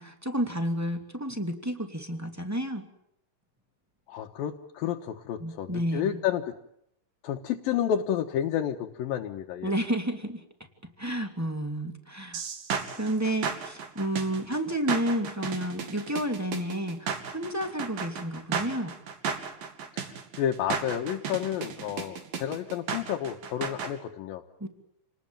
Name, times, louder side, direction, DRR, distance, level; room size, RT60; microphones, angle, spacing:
voice 1, 0.0-2.9 5.4-6.2 9.6-10.4 11.0-12.4 12.9-18.9 24.6-24.7, right 1 dB, 5° right, 5 dB, 2.1 m, -31 dB
voice 2, 4.1-6.5 7.2-9.7 19.9-24.4, left 10 dB, 80° left, 2 dB, 3.0 m, -30 dB
sound 1, 12.3-23.9, right 6 dB, 75° right, 4.2 m, -34 dB
29.0 x 20.0 x 9.0 m, 0.78 s
omnidirectional pair, 4.0 m